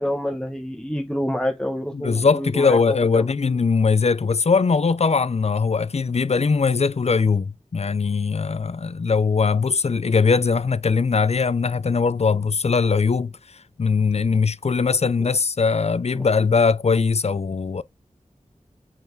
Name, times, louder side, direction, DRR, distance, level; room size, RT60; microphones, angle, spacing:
voice 1, 0.0-3.3 15.2-15.3 16.2-16.3, left 1 dB, 5° left, 1.0 m, -27 dB
voice 2, 1.9-13.3 13.8-17.8, left 5 dB, 55° left, 0.5 m, -20 dB
7.6 x 3.5 x 4.6 m
wide cardioid pair, 60°, 13 cm